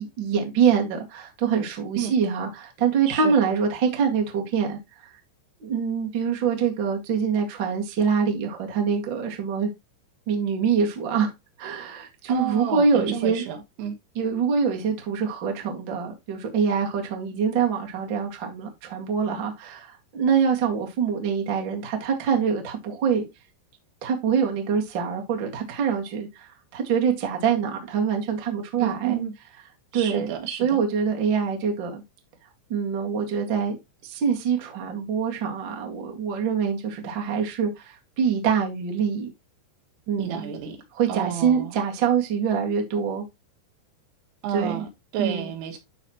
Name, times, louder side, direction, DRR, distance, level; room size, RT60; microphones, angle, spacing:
voice 1, 0.0-5.1 5.6-9.7 10.3-11.3 11.6-13.4 14.1-23.3 24.0-29.2 29.9-32.0 32.7-33.7 34.0-39.3 40.1-40.5 40.9-43.2 44.5-44.9 45.2-45.5, right 6 dB, 50° right, 1.4 m, -25 dB
voice 2, 12.3-14.0 28.8-29.3 29.9-30.8 40.2-40.8 41.1-41.7 44.4-45.8, right 10 dB, 90° right, 3.7 m, -31 dB
12.0 x 4.2 x 3.0 m
omnidirectional pair, 5.3 m